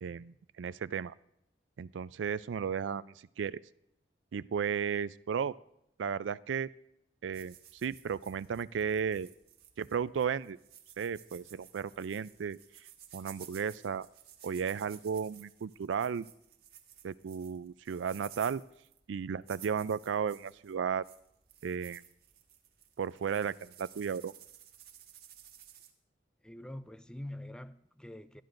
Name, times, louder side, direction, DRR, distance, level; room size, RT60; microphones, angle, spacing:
voice 1, 0.0-1.1 1.8-3.6 4.3-5.6 6.0-6.7 7.2-7.5 7.8-9.3 9.8-10.6 11.0-12.6 13.1-14.1 14.4-16.3 17.0-18.6 19.1-21.0 21.6-22.0 23.0-24.3, right 7 dB, 70° right, 0.4 m, -34 dB
sound 1, 7.3-25.9, right 10 dB, 55° right, 1.5 m, -56 dB
voice 2, 26.4-28.4, left 1 dB, 5° left, 0.4 m, -45 dB
21.0 x 12.5 x 2.6 m
head